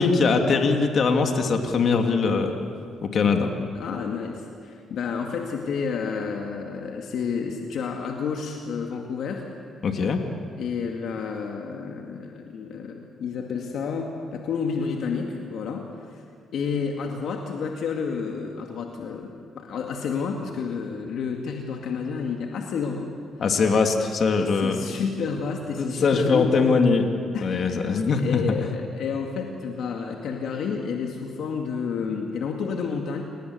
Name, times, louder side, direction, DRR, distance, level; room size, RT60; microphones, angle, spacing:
voice 1, 0.0-2.6 3.0-3.5 9.8-10.2 23.4-24.8 25.8-27.1 27.4-28.4, left 4 dB, 55° left, 4 dB, 2.7 m, -21 dB
voice 2, 3.7-9.5 10.6-16.2 16.5-23.1 24.3-26.6 27.3-33.2, left 5 dB, 70° left, 2 dB, 2.2 m, -30 dB
29.5 x 19.0 x 8.1 m, 2.3 s
cardioid pair, 90°, 0 cm